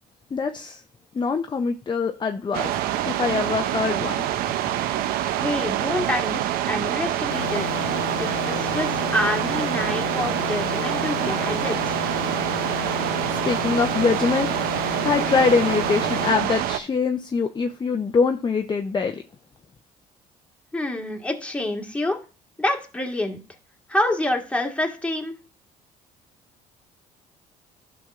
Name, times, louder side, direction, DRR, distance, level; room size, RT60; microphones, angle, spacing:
voice 1, 0.3-0.8 1.1-2.7 3.0-4.2 13.3-14.5 15.0-19.2, left 5 dB, 30° left, 5 dB, 0.7 m, -23 dB
sound 1, 2.5-16.8, right 12 dB, 75° right, 0.6 m, -26 dB
voice 2, 5.4-7.7 8.2-12.0 20.7-22.2 22.6-23.4 23.9-25.3, left 1 dB, 10° left, 3 dB, 1.7 m, -27 dB
sound 2, 7.3-16.3, left 17 dB, 80° left, 0.5 m, -33 dB
11.5 x 6.1 x 2.5 m, 0.34 s
supercardioid pair, 75°, 16 cm